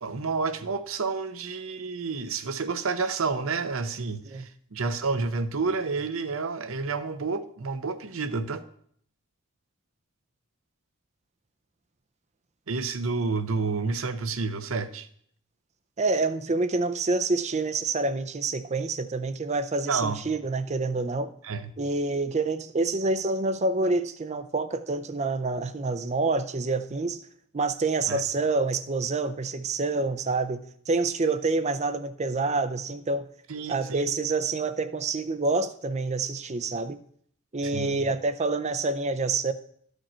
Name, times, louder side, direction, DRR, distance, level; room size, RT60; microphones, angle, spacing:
voice 1, 0.0-8.6 12.7-15.1 19.9-20.2 21.4-21.7 28.1-28.2 33.5-34.1 37.6-38.0, right 4 dB, 65° right, 0.7 m, -30 dB
voice 2, 16.0-21.3 21.8-27.2 27.5-33.3 33.7-37.0 37.5-39.5, right 3 dB, 30° right, 0.5 m, -27 dB
13.5 x 5.2 x 4.3 m
head